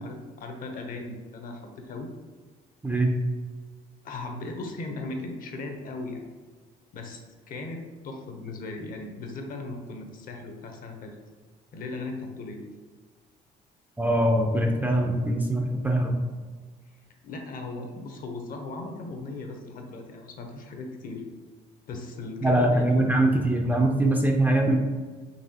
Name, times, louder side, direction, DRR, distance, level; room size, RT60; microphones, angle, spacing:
voice 1, 0.0-2.1 4.0-6.2 6.9-11.2 11.7-12.6 17.2-21.2 21.9-23.1, left 2 dB, 55° left, 4 dB, 0.7 m, -37 dB
voice 2, 2.8-3.1 14.0-16.2 22.4-24.8, right 1 dB, 10° right, 1 dB, 0.4 m, -22 dB
4.0 x 2.8 x 2.8 m, 1.4 s
cardioid pair, 110°, 17 cm